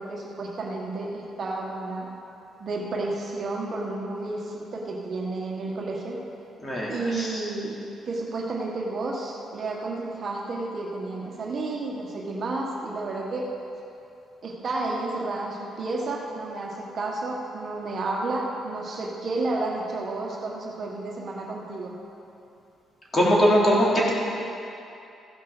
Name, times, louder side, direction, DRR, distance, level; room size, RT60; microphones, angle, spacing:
voice 1, 0.0-2.1 2.6-6.2 6.9-7.8 8.0-13.5 14.4-22.0, right 2 dB, 50° right, -1 dB, 1.6 m, -31 dB
voice 2, 6.6-7.4 23.1-24.1, equal, 25° left, -5 dB, 3.2 m, -21 dB
15.5 x 6.1 x 6.1 m, 2.7 s
cardioid pair, 90°, 0 cm